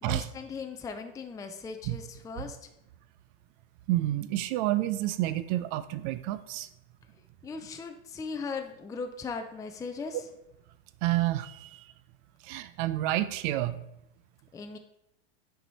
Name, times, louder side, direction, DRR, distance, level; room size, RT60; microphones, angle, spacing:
voice 1, 0.0-2.6 7.4-10.2 14.5-14.8, left 5 dB, 10° left, 5 dB, 0.5 m, -38 dB
voice 2, 3.9-6.7 11.0-11.9 12.4-13.8, right 15 dB, 55° right, 13 dB, 0.6 m, -29 dB
7.6 x 4.8 x 4.0 m, 0.81 s
supercardioid pair, 120°, 31 cm